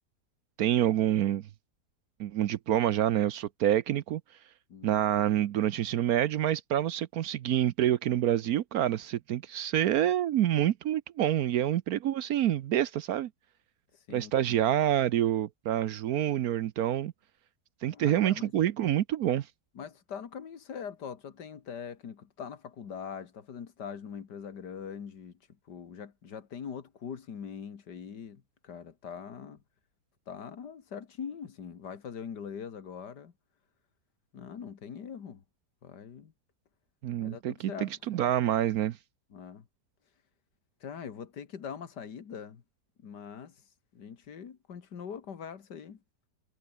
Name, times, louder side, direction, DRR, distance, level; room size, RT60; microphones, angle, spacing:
voice 1, 0.6-1.5 2.2-4.2 4.8-13.3 14.1-17.1 17.8-19.5 37.0-39.0, right 11 dB, 70° right, 1.1 m, -27 dB
voice 2, 4.7-5.0 14.1-14.3 17.9-18.5 19.8-25.3 25.7-29.6 30.3-33.3 34.3-35.4 35.8-36.3 37.2-37.9 39.3-39.7 40.8-42.6 43.0-43.6 43.9-46.0, left 7 dB, 85° left, 2.4 m, -42 dB
omnidirectional pair, 1.8 m